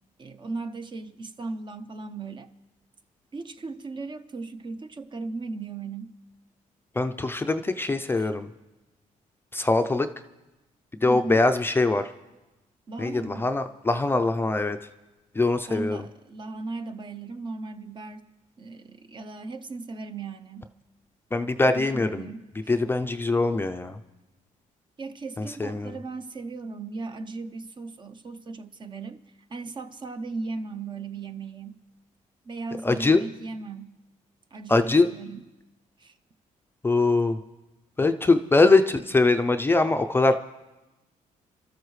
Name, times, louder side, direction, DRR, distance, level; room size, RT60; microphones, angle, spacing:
voice 1, 0.2-2.5 3.3-6.2 8.1-8.3 11.0-11.4 12.9-13.5 15.7-18.2 18.6-20.7 21.8-22.8 25.0-29.2 29.5-31.8 32.4-34.0 34.5-35.5 36.0-36.1, right 3 dB, 35° right, 0.8 m, -37 dB
voice 2, 7.0-8.5 9.5-10.1 11.0-12.1 13.0-14.8 15.3-16.0 21.3-22.3 22.7-24.0 25.4-25.9 32.8-33.2 34.7-35.1 36.8-37.4 38.0-40.3, left 3 dB, 15° left, 0.5 m, -22 dB
28.0 x 13.0 x 3.2 m
cardioid pair, 115°, 14 cm